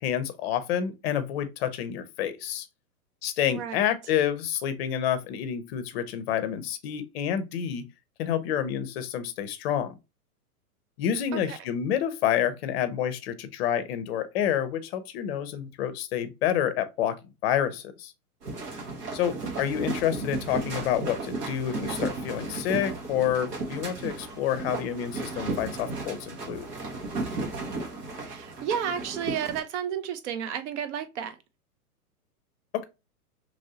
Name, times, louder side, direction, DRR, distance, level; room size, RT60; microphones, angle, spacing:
voice 1, 0.0-2.7 3.2-7.8 8.2-10.0 11.0-18.1 19.1-26.7 32.7-32.8, left 10 dB, 40° left, 0.6 m, -28 dB
sound 1, 18.4-29.6, right 3 dB, 85° right, 1.4 m, -34 dB
voice 2, 19.2-19.6 28.2-31.4, right 8 dB, 50° right, 0.6 m, -32 dB
3.0 x 2.7 x 2.7 m
hypercardioid pair, 120°, 46 cm